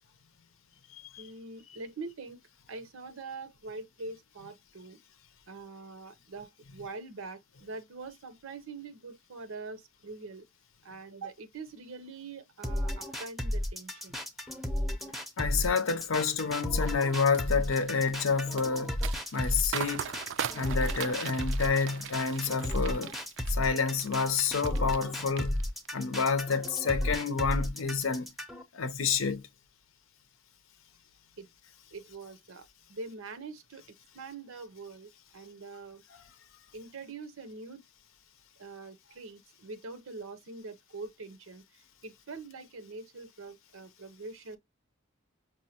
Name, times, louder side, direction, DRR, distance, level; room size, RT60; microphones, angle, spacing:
voice 1, 1.2-2.4 2.7-5.0 5.5-10.5 10.8-14.2 31.4-31.5 31.9-36.0 36.7-37.8 38.6-41.6 42.0-44.6, right 3 dB, 85° right, 0.7 m, -44 dB
sound 1, 12.6-28.6, left 1 dB, ahead, 0.5 m, -33 dB
voice 2, 15.4-18.9 19.3-20.1 20.5-23.1 23.5-25.6 25.9-28.3 28.7-29.4, left 5 dB, 85° left, 0.6 m, -29 dB
sound 2, 16.8-25.1 25.4-26.0 26.4-26.7, right 9 dB, 60° right, 0.3 m, -40 dB
5.4 x 2.2 x 2.7 m
head